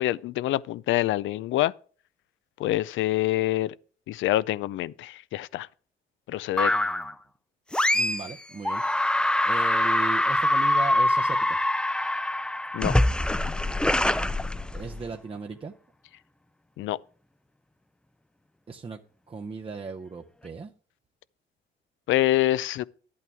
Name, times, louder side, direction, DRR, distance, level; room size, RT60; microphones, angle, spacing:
voice 1, 0.0-1.7 2.6-3.7 4.1-5.7 6.3-6.7 12.7-13.0 16.8-17.0 22.1-22.8, left 15 dB, 80° left, 0.4 m, -26 dB
sound 1, 6.6-7.1 7.7-8.3 8.6-15.1, left 1 dB, 5° left, 0.4 m, -24 dB
voice 2, 6.7-7.1 7.9-9.1 9.4-11.6 14.7-15.7 18.7-19.0 19.3-20.7, right 4 dB, 30° right, 0.7 m, -37 dB
10.5 x 8.6 x 3.5 m
cardioid pair, 90°, 20 cm